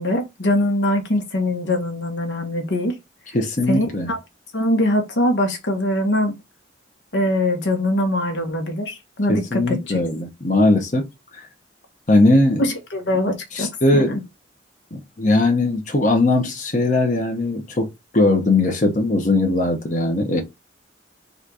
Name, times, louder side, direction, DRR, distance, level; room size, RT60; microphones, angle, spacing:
voice 1, 0.0-3.0 3.7-4.2 4.5-6.3 7.1-10.0 12.6-14.2, left 1 dB, 70° left, 1.3 m, -22 dB
voice 2, 3.3-4.1 9.3-11.0 11.3-11.5 12.1-12.6 13.5-14.2 14.9-17.9 18.1-20.4, left 2 dB, 40° left, 0.9 m, -19 dB
4.0 x 2.6 x 4.7 m
head